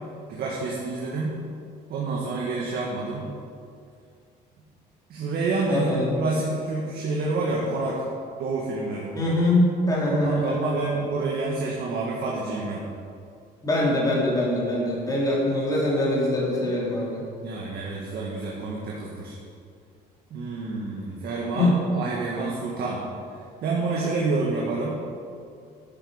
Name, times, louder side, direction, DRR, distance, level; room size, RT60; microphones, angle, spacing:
voice 1, 0.3-1.3 1.9-3.3 5.1-8.0 8.4-9.1 10.0-12.8 17.4-19.4 20.3-23.0 23.6-25.0, right 3 dB, 70° right, -3 dB, 1.7 m, -28 dB
voice 2, 5.7-6.1 9.1-10.7 13.6-17.2 21.5-21.8, left 1 dB, 20° left, -5 dB, 3.1 m, -23 dB
11.5 x 7.7 x 5.1 m, 2.4 s
cardioid pair, 110°, 17 cm